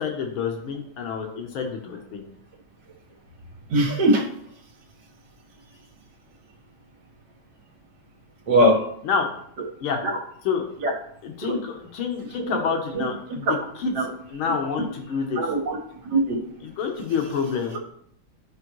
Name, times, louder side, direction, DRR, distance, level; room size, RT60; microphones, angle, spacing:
voice 1, 0.0-2.2 8.6-8.7 9.1-9.3 9.8-10.0 10.5-10.7 11.2-13.5 13.8-14.0 14.3-15.4 16.6-17.8, left 6 dB, 85° left, 3 dB, 1.9 m, -28 dB
voice 2, 3.7-4.3 8.5-8.8 10.0-10.1 10.8-10.9 11.4-11.6 12.4-12.5 12.9-13.1 13.5-13.6 13.9-14.1 15.4-15.8 16.1-16.4 17.7-17.8, right 1 dB, 60° right, 0 dB, 2.2 m, -21 dB
11.5 x 5.2 x 3.1 m, 0.68 s
omnidirectional pair, 2.2 m